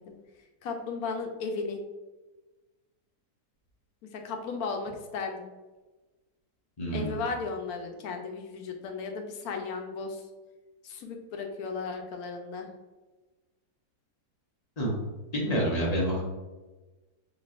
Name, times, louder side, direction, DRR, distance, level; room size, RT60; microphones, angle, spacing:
voice 1, 0.6-1.8 4.1-5.5 6.9-10.2 10.8-12.7, left 4 dB, 75° left, 3 dB, 1.0 m, -35 dB
voice 2, 6.8-7.2 14.8-14.9 15.3-16.2, right 1 dB, 40° left, -3 dB, 0.6 m, -28 dB
5.2 x 2.9 x 2.4 m, 1.2 s
omnidirectional pair, 1.7 m